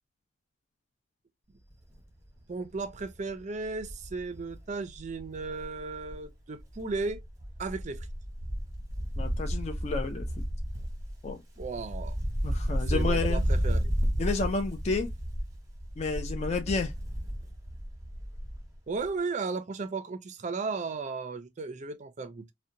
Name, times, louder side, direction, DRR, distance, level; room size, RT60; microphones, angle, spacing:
Wind, 1.7-2.0 2.4-2.5 2.7-6.3 6.6-18.8 19.0-19.1, equal, 15° right, 0.8 m, -32 dB
voice 1, 2.5-7.2 7.6-8.1 11.6-12.2 12.7-13.9 18.9-22.5, right 4 dB, 40° right, 0.4 m, -35 dB
voice 2, 9.2-10.3 11.2-11.4 12.4-13.5 14.2-15.1 16.0-16.9, left 3 dB, 35° left, 0.4 m, -30 dB
2.7 x 2.1 x 2.5 m
head